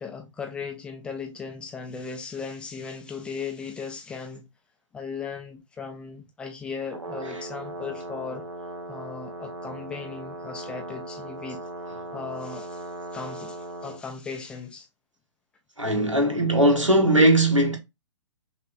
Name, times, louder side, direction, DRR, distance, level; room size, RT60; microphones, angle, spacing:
voice 1, 0.0-4.5 4.9-8.5 8.9-11.6 12.1-14.9, left 5 dB, 5° left, 0.4 m, -37 dB
Brass instrument, 6.8-14.0, right 2 dB, 70° right, 1.0 m, -38 dB
voice 2, 15.8-17.8, right 1 dB, 90° right, 1.6 m, -19 dB
5.8 x 2.5 x 2.4 m
figure-of-eight pair, 125°, 16 cm